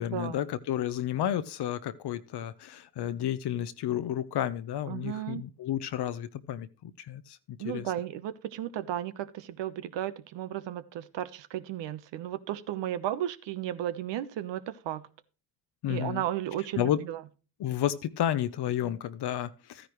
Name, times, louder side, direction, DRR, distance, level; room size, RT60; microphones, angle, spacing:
voice 1, 0.0-7.9 15.8-16.2 16.8-17.0 17.6-19.9, left 11 dB, 60° left, 0.9 m, -31 dB
voice 2, 4.9-5.4 7.6-15.0 15.9-17.2, right 12 dB, 70° right, 1.1 m, -34 dB
13.0 x 10.0 x 3.1 m
hypercardioid pair, 55°, 46 cm